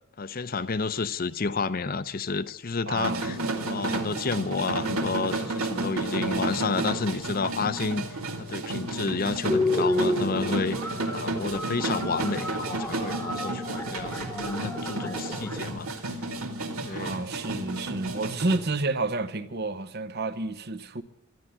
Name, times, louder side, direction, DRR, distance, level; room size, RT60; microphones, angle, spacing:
voice 1, 0.2-3.4 3.6-8.0 8.4-16.2 16.8-17.2, left 4 dB, 40° left, 0.6 m, -30 dB
voice 2, 2.9-3.3 16.9-21.0, right 3 dB, 50° right, 0.9 m, -30 dB
sound 1, 3.0-18.6, right 2 dB, 80° right, 2.3 m, -32 dB
sound 2, 9.5-15.6, left 1 dB, 10° left, 1.1 m, -31 dB
12.5 x 11.0 x 8.9 m
head